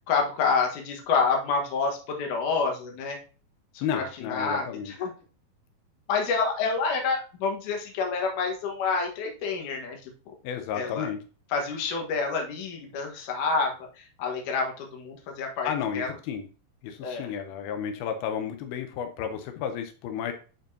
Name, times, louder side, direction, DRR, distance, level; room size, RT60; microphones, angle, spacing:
voice 1, 0.1-3.2 3.7-5.1 6.1-10.3 10.7-11.1 11.5-16.1 17.0-17.3, left 4 dB, 65° left, 2 dB, 2.7 m, -28 dB
voice 2, 3.8-4.9 10.4-11.2 15.6-16.5 16.8-20.3, left 8 dB, 90° left, 6 dB, 2.7 m, -32 dB
10.5 x 4.5 x 2.8 m, 0.36 s
omnidirectional pair, 4.3 m